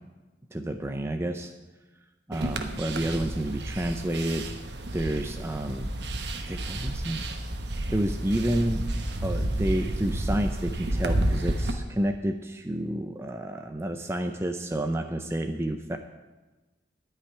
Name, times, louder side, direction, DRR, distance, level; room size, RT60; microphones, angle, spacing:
voice 1, 0.5-1.5 2.3-4.5 4.9-5.9 6.5-7.3 7.9-8.8 9.2-16.0, right 1 dB, 15° right, 5 dB, 0.5 m, -30 dB
sound 1, 2.3-11.7, right 1 dB, 60° right, 1.1 m, -31 dB
13.5 x 5.7 x 9.4 m, 1.2 s
head